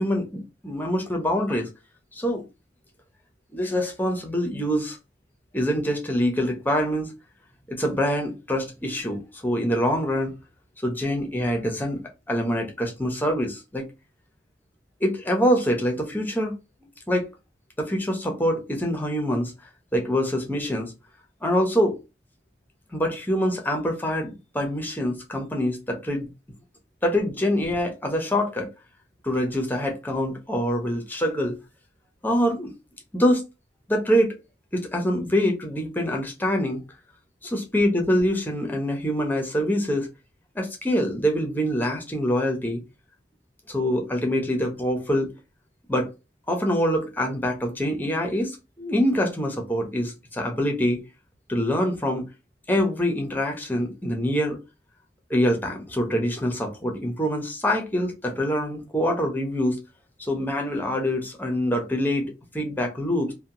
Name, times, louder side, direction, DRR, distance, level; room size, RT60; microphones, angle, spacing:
voice 1, 0.0-1.7 2.1-2.4 3.5-5.0 5.5-7.1 7.7-10.3 10.8-12.0 12.3-13.9 15.0-16.5 17.1-17.2 17.8-19.5 19.9-20.9 21.4-22.0 22.9-26.3 27.0-28.7 29.2-31.6 32.2-32.7 33.1-33.4 33.9-34.4 34.7-36.8 37.4-40.1 40.5-42.8 43.7-45.3 45.9-46.1 46.5-51.0 51.5-52.2 52.7-54.6 55.3-59.8 60.2-63.3, equal, 10° left, 0.6 m, -25 dB
2.8 x 2.1 x 2.6 m
head